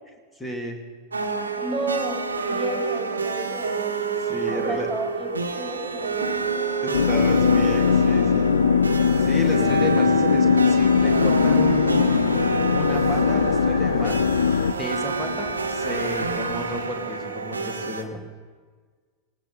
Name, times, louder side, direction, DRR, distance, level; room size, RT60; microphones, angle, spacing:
voice 1, 0.3-0.8 4.2-4.9 6.8-8.6 9.2-12.0 12.7-14.2 14.7-18.2, left 1 dB, 15° left, 3 dB, 2.5 m, -33 dB
sound 1, 1.1-18.0, right 4 dB, 75° right, 1.2 m, -28 dB
voice 2, 1.6-3.8 4.5-6.3, right 2 dB, 5° right, -1 dB, 4.7 m, -32 dB
sound 2, 6.9-14.7, left 6 dB, 70° left, 0.4 m, -20 dB
sound 3, 8.9-16.9, right 6 dB, 35° right, 1.8 m, -45 dB
18.5 x 18.0 x 4.1 m, 1.5 s
figure-of-eight pair, 90°, 0 cm